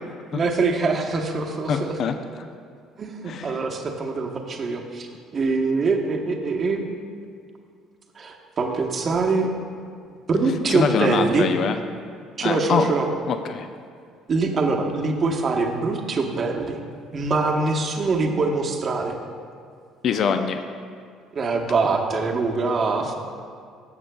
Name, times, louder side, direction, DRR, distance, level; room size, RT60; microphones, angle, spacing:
voice 1, 0.3-2.0 3.0-5.1 5.3-6.9 8.2-9.5 10.3-11.5 12.4-13.1 14.3-16.8 17.1-19.2 21.3-23.1, right 3 dB, 45° right, 3 dB, 0.9 m, -23 dB
voice 2, 1.7-2.5 3.3-3.6 10.7-11.8 12.4-12.9 13.3-13.7 20.0-20.6, left 6 dB, 55° left, 8 dB, 0.4 m, -24 dB
12.5 x 7.1 x 2.3 m, 2.2 s
hypercardioid pair, 65°, 0 cm